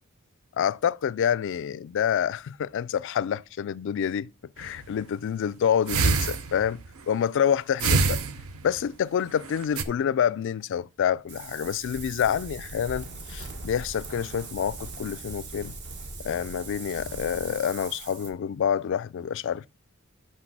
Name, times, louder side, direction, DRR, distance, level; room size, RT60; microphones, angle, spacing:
voice 1, 0.6-4.3 4.6-8.2 8.6-15.8 16.2-19.7, left 8 dB, 60° left, 0.3 m, -27 dB
sound 1, 4.6-4.9 5.9-6.9 7.8-8.8 9.4-9.8, right 4 dB, 75° right, 0.7 m, -25 dB
Wind, 11.3-18.3, right 3 dB, 55° right, 1.4 m, -40 dB
6.0 x 5.8 x 6.0 m
head